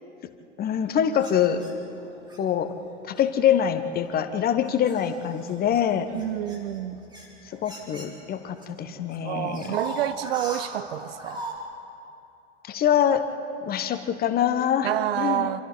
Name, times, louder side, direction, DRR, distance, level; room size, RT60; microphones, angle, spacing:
voice 1, 0.6-1.6 2.4-2.8 3.1-6.1 7.5-9.8 12.7-13.2 13.7-14.9 15.2-15.5, left 9 dB, 25° left, 1.1 m, -24 dB
sound 1, 1.1-2.4 3.2-3.4 4.0-8.6 8.9-11.6, right 1 dB, 10° right, 4.2 m, -39 dB
voice 2, 6.1-7.0 9.2-11.4 14.8-15.6, right 13 dB, 55° right, 0.8 m, -28 dB
27.0 x 26.5 x 4.0 m
figure-of-eight pair, 95°, 36 cm